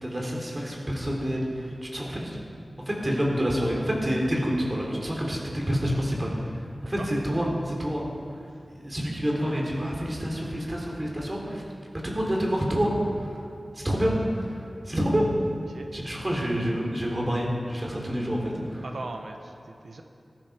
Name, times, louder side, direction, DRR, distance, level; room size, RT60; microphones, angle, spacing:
voice 1, 0.0-2.4 2.9-8.0 8.7-11.6 12.0-12.9 13.2-13.4 13.7-14.6 14.9-15.2 15.9-18.9, equal, 30° right, -2 dB, 3.9 m, -28 dB
voice 2, 18.8-20.0, right 3 dB, 85° right, 4 dB, 1.3 m, -39 dB
19.0 x 14.0 x 5.2 m, 2.5 s
wide cardioid pair, 80°, 0 cm